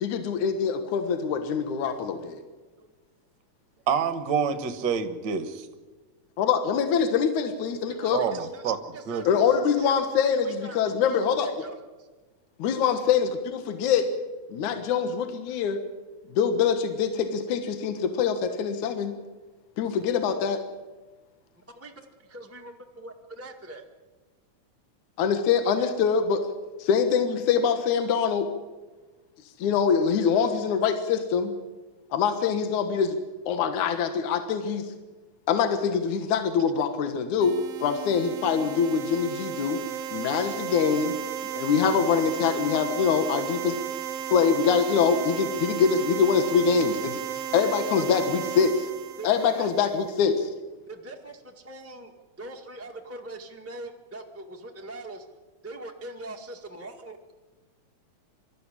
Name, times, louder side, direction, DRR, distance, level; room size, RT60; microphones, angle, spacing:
voice 1, 0.0-2.4 6.4-8.2 9.3-11.7 12.6-14.1 14.5-15.8 16.3-19.1 19.8-20.6 25.2-26.4 26.8-28.5 29.6-31.5 32.1-33.2 33.5-34.9 35.5-39.8 40.1-41.1 41.5-43.8 44.3-48.9 49.2-50.5, left 6 dB, 75° left, 7 dB, 2.7 m, -24 dB
voice 2, 3.9-5.4 8.1-9.2, right 7 dB, 45° right, 9 dB, 1.6 m, -27 dB
voice 3, 7.9-8.6 8.9-9.9 10.4-10.8 11.0-12.1 21.7-21.9 22.3-23.8 25.8-25.9 47.9-48.0 49.2-49.9 50.9-52.1 52.4-55.2 55.6-57.2, right 2 dB, 5° right, 1 dB, 1.0 m, -42 dB
sound 1, 37.4-50.1, right 9 dB, 65° right, 1.8 m, -34 dB
25.0 x 13.5 x 10.0 m, 1.3 s
omnidirectional pair, 3.6 m